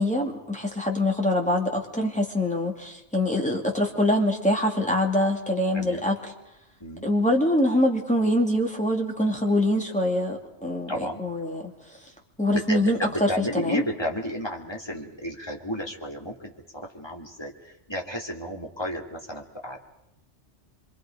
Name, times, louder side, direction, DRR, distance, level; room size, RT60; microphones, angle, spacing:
voice 1, 0.0-6.1 7.0-10.9 11.2-11.7 12.4-13.3 13.5-13.8, left 1 dB, 5° left, 0 dB, 2.7 m, -24 dB
voice 2, 5.7-6.1 6.8-7.0 10.9-11.2 12.5-19.8, equal, 20° left, 0 dB, 2.4 m, -32 dB
26.0 x 24.0 x 5.2 m, 0.89 s
omnidirectional pair, 1.2 m